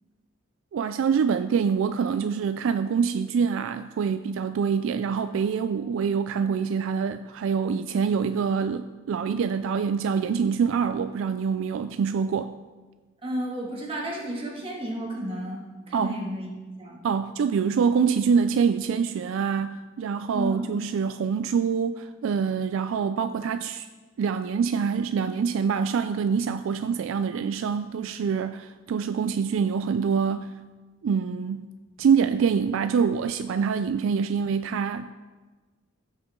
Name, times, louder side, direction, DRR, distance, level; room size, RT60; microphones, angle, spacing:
voice 1, 0.7-12.5 15.9-16.2 17.0-23.9 24.2-30.5 31.0-31.7 32.0-35.1, right 6 dB, 65° right, 0.3 m, -25 dB
voice 2, 13.2-16.5 16.8-17.0 20.3-20.6, right 1 dB, 25° right, 2.1 m, -32 dB
15.0 x 6.6 x 3.7 m
head